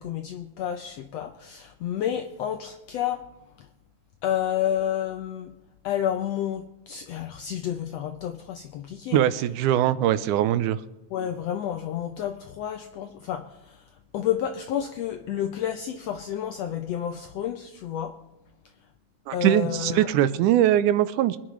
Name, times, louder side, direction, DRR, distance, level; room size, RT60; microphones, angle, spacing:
voice 1, 0.0-3.3 4.2-5.5 5.8-9.2 9.9-10.0 11.1-13.8 14.1-18.2 19.3-20.1, left 10 dB, 80° left, 7 dB, 1.5 m, -30 dB
voice 2, 9.1-10.8 19.3-21.4, right 12 dB, 80° right, 13 dB, 2.1 m, -21 dB
25.0 x 10.0 x 3.2 m, 0.98 s
omnidirectional pair, 3.6 m